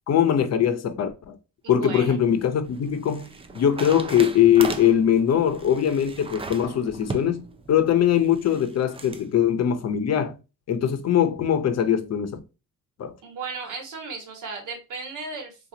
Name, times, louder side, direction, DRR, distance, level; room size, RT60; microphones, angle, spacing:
voice 1, 0.1-1.4 1.7-3.3 3.5-10.3 10.7-12.4 13.0-13.1, left 9 dB, 50° left, 0.7 m, -21 dB
voice 2, 1.6-2.2 13.2-15.7, right 4 dB, 65° right, 1.4 m, -35 dB
sound 1, 1.9-9.3, right 4 dB, 15° right, 0.4 m, -38 dB
2.8 x 2.5 x 3.8 m
cardioid pair, 105°, 32 cm